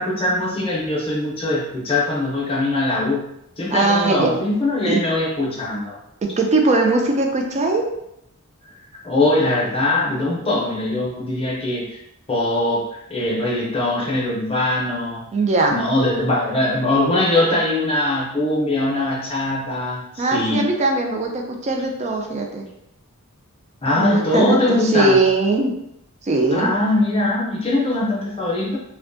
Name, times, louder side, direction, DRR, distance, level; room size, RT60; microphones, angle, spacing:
voice 1, 0.0-3.2 3.6-6.0 9.0-12.0 12.3-15.2 15.7-20.7 23.8-25.2 26.5-28.8, left 2 dB, 25° left, -3 dB, 0.6 m, -21 dB
voice 2, 3.7-4.4 4.9-5.0 6.2-7.9 15.3-15.8 20.2-22.7 23.9-25.8 26.2-26.7, right 3 dB, 30° right, 2 dB, 0.4 m, -20 dB
2.5 x 2.2 x 2.5 m, 0.80 s
head